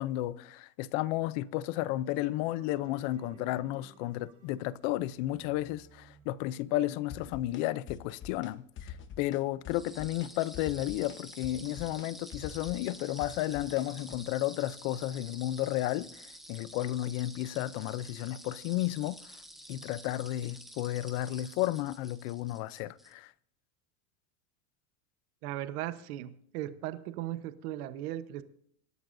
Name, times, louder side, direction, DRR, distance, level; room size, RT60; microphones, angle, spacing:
voice 1, 0.0-19.2 19.7-23.3, left 15 dB, 50° left, 0.6 m, -33 dB
sound 1, 1.3-6.7, right 6 dB, 40° right, 6.9 m, -58 dB
sound 2, 7.1-7.6 7.9-8.5 8.8-9.4 9.6-10.3 10.5-14.2, left 7 dB, 25° left, 1.0 m, -45 dB
sound 3, 9.7-23.1, equal, ahead, 1.4 m, -50 dB
voice 2, 25.4-28.4, right 14 dB, 70° right, 1.1 m, -37 dB
25.5 x 13.5 x 2.6 m
supercardioid pair, 155°, 46 cm